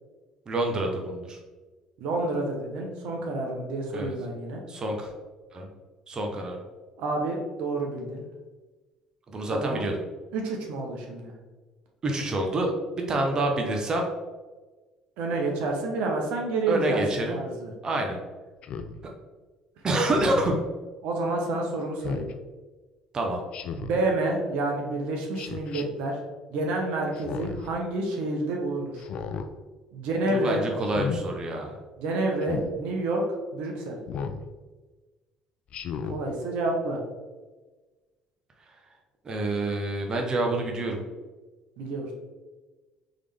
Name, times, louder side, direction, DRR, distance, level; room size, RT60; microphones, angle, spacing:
voice 1, 0.5-1.4 3.9-4.1 4.7-5.1 5.5-5.7 6.1-6.6 9.3-10.0 12.0-14.1 16.7-17.4 17.8-18.2 19.8-20.6 23.1-23.4 30.3-31.7 39.2-41.0, right 1 dB, 35° right, 2 dB, 0.8 m, -27 dB
voice 2, 2.0-4.6 7.0-8.2 9.6-9.9 10.3-11.3 15.2-17.7 21.0-22.2 23.7-26.2 26.5-29.0 29.9-30.6 32.0-33.2 33.5-34.0 36.1-37.0 41.8-42.1, right 2 dB, 75° right, 1 dB, 0.9 m, -29 dB
Speech synthesizer, 18.6-19.0 20.1-20.6 22.0-22.3 23.5-24.0 25.4-25.8 27.1-27.7 29.0-29.5 30.8-31.2 32.4-32.7 34.1-34.4 35.7-36.2, left 6 dB, 60° left, 0.4 m, -34 dB
3.8 x 3.3 x 3.5 m, 1.3 s
supercardioid pair, 85°, 2 cm